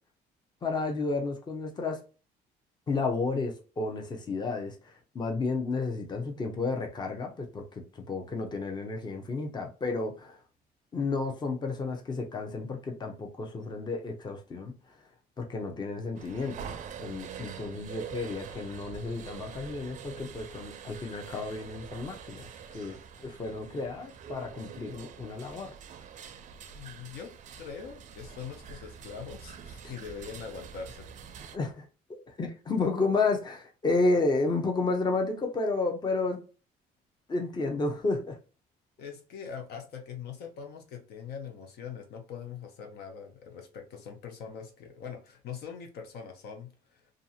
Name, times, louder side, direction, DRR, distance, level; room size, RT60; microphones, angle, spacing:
voice 1, 0.6-2.0 2.9-4.7 5.1-7.6 7.9-10.4 10.9-14.7 15.4-16.7 17.0-22.5 22.7-23.0 23.2-25.7 29.8-29.9 31.5-31.9 32.3-36.4 37.3-38.3, left 3 dB, 25° left, 0.7 m, -31 dB
sound 1, 16.1-31.6, right 7 dB, 45° right, 0.4 m, -45 dB
voice 2, 26.7-31.1 39.0-47.0, left 6 dB, 75° left, 0.7 m, -42 dB
2.6 x 2.4 x 2.7 m
cardioid pair, 110°, 17 cm